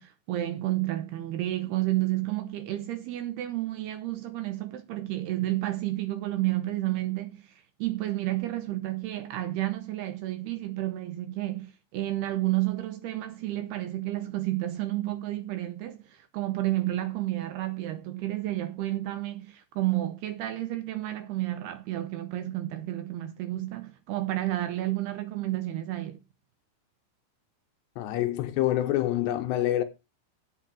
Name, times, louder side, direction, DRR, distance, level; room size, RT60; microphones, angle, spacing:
voice 1, 0.0-26.2, right 15 dB, 80° right, 2.4 m, -31 dB
voice 2, 28.0-29.8, left 13 dB, 75° left, 2.9 m, -26 dB
8.1 x 6.6 x 7.4 m
omnidirectional pair, 5.3 m